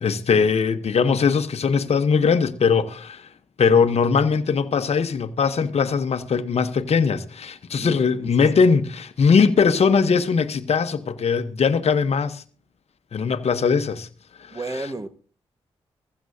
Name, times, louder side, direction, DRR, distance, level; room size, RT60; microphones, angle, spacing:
voice 1, 0.0-3.3 3.6-12.4 13.1-14.1, left 5 dB, 60° left, 1.0 m, -20 dB
voice 2, 7.8-8.3 14.5-15.1, right 2 dB, 25° right, 1.5 m, -33 dB
15.0 x 15.0 x 2.8 m
supercardioid pair, 45°, 12 cm